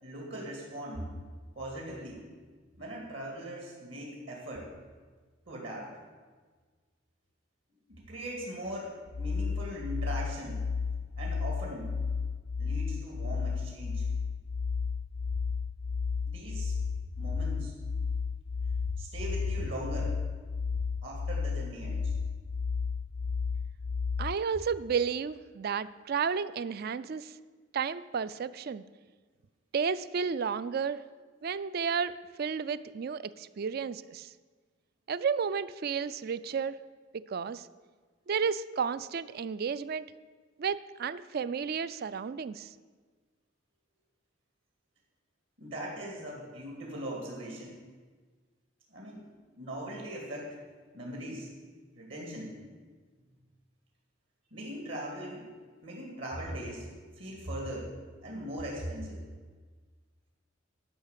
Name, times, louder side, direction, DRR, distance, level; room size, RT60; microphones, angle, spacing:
voice 1, 0.0-1.1 1.6-2.2 2.8-4.7 5.5-5.9 7.9-10.6 11.2-12.0 12.6-14.0 16.2-16.8 17.2-17.7 19.0-20.2 21.0-22.1 45.6-47.7 48.9-49.3 49.6-50.6 50.9-51.6 51.9-52.5 54.5-55.5 55.8-56.9 57.1-57.9 58.2-59.2, right 1 dB, 65° right, -1 dB, 2.5 m, -40 dB
sound 1, 9.1-24.4, left 5 dB, 70° left, 0.6 m, -33 dB
voice 2, 24.2-27.3 27.7-28.8 29.7-31.0 31.4-34.3 35.1-36.8 37.3-37.7 38.3-40.0 40.6-42.7, right 6 dB, 50° right, 16 dB, 0.4 m, -32 dB
11.5 x 5.6 x 8.2 m, 1.5 s
head